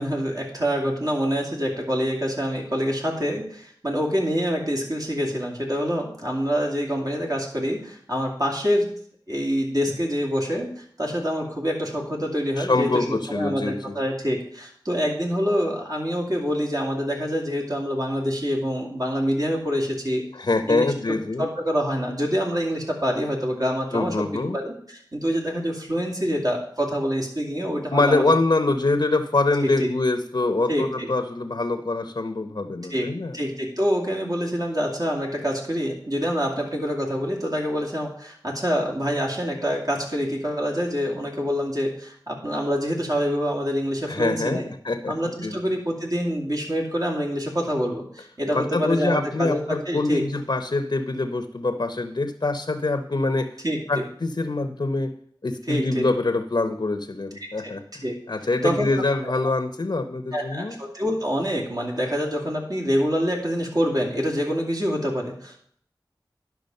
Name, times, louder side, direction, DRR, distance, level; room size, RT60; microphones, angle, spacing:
voice 1, 0.0-8.9 9.3-20.2 20.7-20.9 21.4-24.2 24.5-28.2 29.6-29.9 30.7-31.1 32.9-33.1 33.3-44.7 45.1-50.2 53.6-54.0 55.7-56.0 57.6-57.7 58.0-58.2 58.6-58.9 59.2-59.3 60.3-65.6, equal, 50° right, 0 dB, 2.5 m, -26 dB
voice 2, 12.6-14.0 20.3-21.5 23.9-24.6 27.9-33.4 44.1-45.1 45.4-45.5 48.5-53.5 53.9-55.1 55.4-60.8, left 2 dB, 65° left, 7 dB, 0.7 m, -24 dB
10.5 x 6.1 x 5.3 m, 0.62 s
wide cardioid pair, 50°, 8 cm